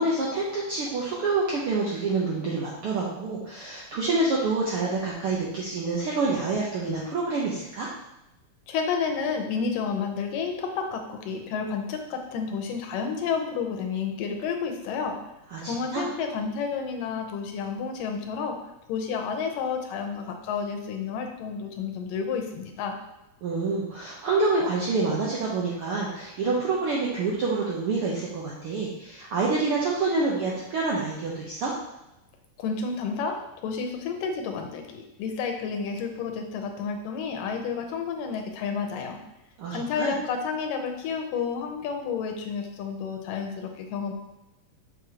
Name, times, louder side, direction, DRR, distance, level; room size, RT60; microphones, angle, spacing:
voice 1, 0.0-7.9 15.5-16.0 23.4-31.7 39.6-40.1, right 3 dB, 75° right, -4 dB, 1.3 m, -27 dB
voice 2, 8.7-15.2 15.7-18.6 18.9-23.0 32.6-39.2 39.7-44.1, left 5 dB, 90° left, 4 dB, 2.5 m, -30 dB
6.9 x 6.1 x 2.9 m, 0.93 s
omnidirectional pair, 3.7 m